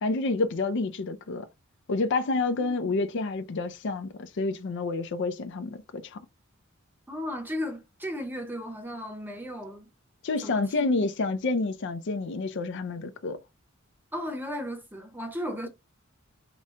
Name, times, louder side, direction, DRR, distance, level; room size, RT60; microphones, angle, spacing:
voice 1, 0.0-1.5 1.9-6.2 10.2-13.4, left 3 dB, 60° left, 0.5 m, -29 dB
voice 2, 2.6-3.0 7.1-9.9 10.4-11.1 14.1-15.7, left 1 dB, 10° right, 0.8 m, -35 dB
4.9 x 2.2 x 3.7 m
head